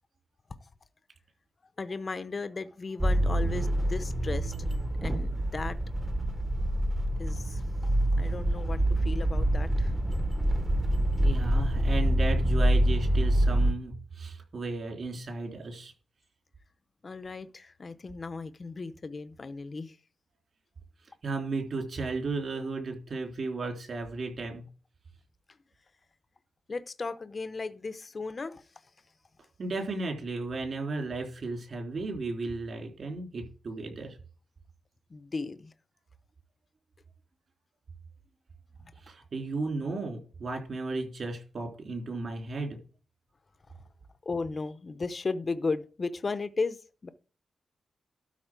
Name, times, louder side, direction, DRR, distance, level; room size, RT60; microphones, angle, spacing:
voice 1, 1.8-4.5 5.0-5.8 7.2-7.9 8.2-9.9 17.0-20.0 26.7-28.7 35.1-35.7 38.8-38.9 44.2-47.1, left 4 dB, 30° left, 0.7 m, -35 dB
sound 1, 3.0-13.7, right 1 dB, 20° right, 1.0 m, -26 dB
voice 2, 11.2-15.9 21.2-24.6 29.6-34.2 39.0-42.8, right 3 dB, 50° right, 3.4 m, -34 dB
12.5 x 4.2 x 7.5 m
wide cardioid pair, 175°, 0 cm